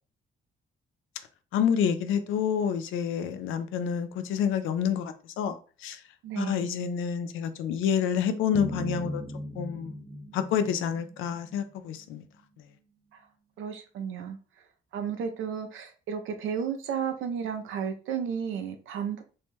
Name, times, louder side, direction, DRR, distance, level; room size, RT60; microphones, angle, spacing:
voice 1, 1.5-6.0 6.4-9.2 9.6-10.0 10.3-12.2, left 8 dB, 85° left, 0.4 m, -28 dB
voice 2, 6.2-6.7 13.1-13.3 13.6-14.7 14.9-19.2, right 7 dB, 80° right, 0.5 m, -33 dB
sound 1, 8.5-11.8, equal, 10° right, 0.5 m, -38 dB
2.7 x 2.2 x 3.0 m
cardioid pair, 90°, 20 cm